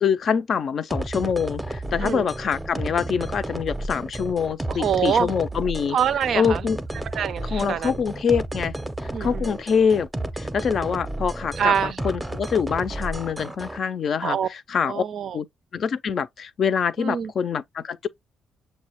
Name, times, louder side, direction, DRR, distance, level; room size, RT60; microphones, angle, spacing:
voice 1, 0.0-6.0 6.3-6.8 7.5-8.7 9.2-10.1 10.4-15.0 15.3-15.5 15.7-18.1, left 6 dB, 55° left, 0.4 m, -25 dB
sound 1, 0.9-13.8, right 1 dB, 10° right, 0.6 m, -32 dB
voice 2, 4.7-5.3 5.9-6.6 7.1-8.0 9.1-9.5 11.6-12.0 14.2-14.5 14.8-15.4 17.0-17.3, right 8 dB, 65° right, 0.4 m, -25 dB
6.6 x 2.2 x 2.9 m
cardioid pair, 90°, 0 cm